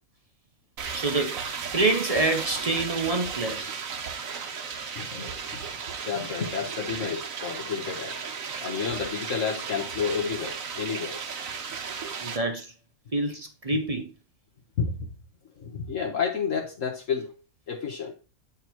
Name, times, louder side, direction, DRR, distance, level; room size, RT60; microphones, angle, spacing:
sound 1, 0.8-12.4, right 6 dB, 65° right, 1.3 m, -35 dB
voice 1, 0.9-1.4 1.7-3.7 12.2-12.7 13.1-14.1, right 2 dB, 30° right, 0.8 m, -26 dB
voice 2, 4.9-5.6 6.0-11.3 14.8-15.1 15.6-17.3 17.7-18.1, left 6 dB, 60° left, 1.6 m, -31 dB
9.1 x 3.5 x 4.5 m
omnidirectional pair, 1.5 m